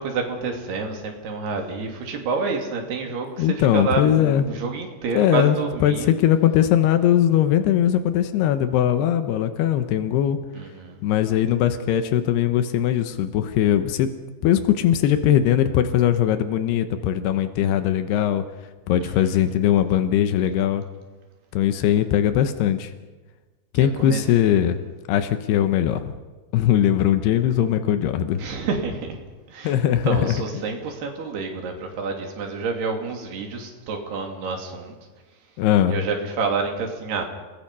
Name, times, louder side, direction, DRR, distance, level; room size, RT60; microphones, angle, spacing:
voice 1, 0.0-6.1 10.5-11.0 19.0-19.3 23.8-24.2 28.4-29.2 29.5-29.7 30.0-34.9 35.8-37.2, right 4 dB, 80° right, 3 dB, 4.7 m, -28 dB
voice 2, 3.4-4.5 5.2-10.4 11.0-14.1 14.4-18.4 18.9-20.8 21.5-22.9 23.7-24.8 25.1-26.1 26.5-28.5 29.6-30.6 35.6-36.0, left 10 dB, 85° left, 9 dB, 3.1 m, -20 dB
29.5 x 21.5 x 5.5 m, 1.3 s
omnidirectional pair, 4.6 m